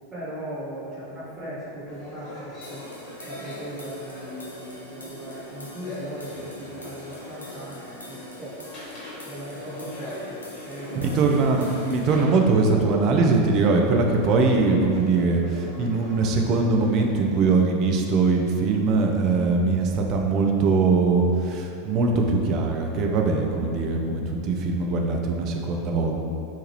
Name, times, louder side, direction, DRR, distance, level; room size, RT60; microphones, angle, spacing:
voice 1, 0.1-2.8 3.2-8.6 9.2-11.3, equal, 25° right, -9 dB, 1.1 m, -38 dB
sound 1, 1.9-17.1, left 1 dB, 35° left, 1.2 m, -40 dB
sound 2, 2.6-12.2, left 1 dB, 85° left, 0.4 m, -46 dB
voice 2, 10.9-26.1, right 3 dB, 45° right, 2 dB, 0.4 m, -22 dB
2.9 x 2.3 x 3.1 m, 2.6 s
figure-of-eight pair, 85°, 0 cm